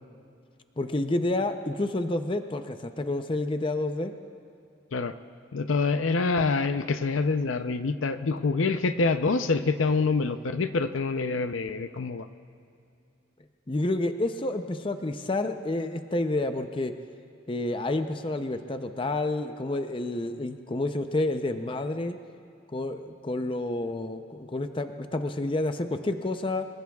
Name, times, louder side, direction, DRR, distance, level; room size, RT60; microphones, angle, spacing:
voice 1, 0.8-4.1 13.7-16.9 17.5-22.2 22.7-26.7, left 2 dB, 25° left, 7 dB, 0.6 m, -29 dB
voice 2, 5.5-12.3, left 4 dB, 85° left, 9 dB, 0.6 m, -26 dB
26.0 x 22.5 x 2.4 m, 2.6 s
head